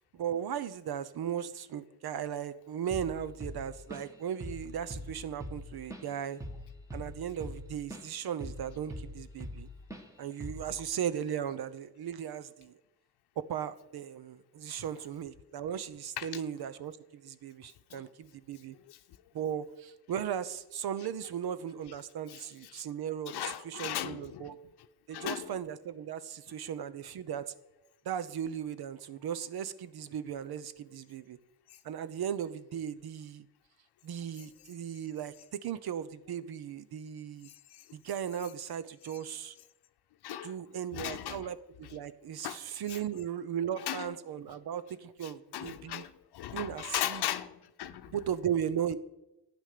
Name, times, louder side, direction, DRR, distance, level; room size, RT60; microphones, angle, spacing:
voice 1, 0.1-6.4 6.9-9.7 10.2-12.7 13.4-18.7 19.3-24.6 25.1-27.5 28.0-31.4 31.8-33.5 34.0-37.5 37.9-39.6 40.4-46.1 46.5-47.2 48.1-49.0, right 9 dB, 70° right, 15 dB, 0.8 m, -37 dB
Drum kit / Drum, 2.9-3.2 3.4-4.2 4.4-4.7 4.9-8.1 8.4-9.6 9.9-10.1 10.4-10.7, equal, 10° right, 1.4 m, -41 dB
voice 2, 23.3-24.5 25.1-25.5 31.7-31.8 37.5-37.8 40.2-40.5 40.9-41.4 42.4-42.6 42.9-43.0 43.8-44.1 45.2-48.2, left 12 dB, 85° left, 8 dB, 0.8 m, -37 dB
12.5 x 9.2 x 6.7 m, 0.95 s
wide cardioid pair, 140°, 38 cm